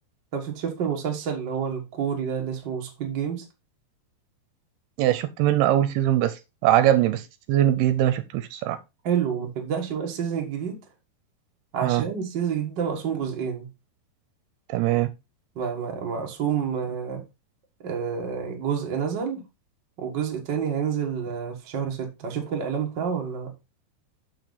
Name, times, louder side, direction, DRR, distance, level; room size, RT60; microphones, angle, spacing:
voice 1, 0.3-3.4 9.0-10.8 11.7-13.7 15.5-17.2 17.8-19.5 20.0-23.5, right 7 dB, 60° right, 1.1 m, -28 dB
voice 2, 5.0-7.2 7.5-8.8 11.8-12.0 14.7-15.1, right 12 dB, 80° right, 2.5 m, -21 dB
7.1 x 6.2 x 4.0 m
omnidirectional pair, 4.9 m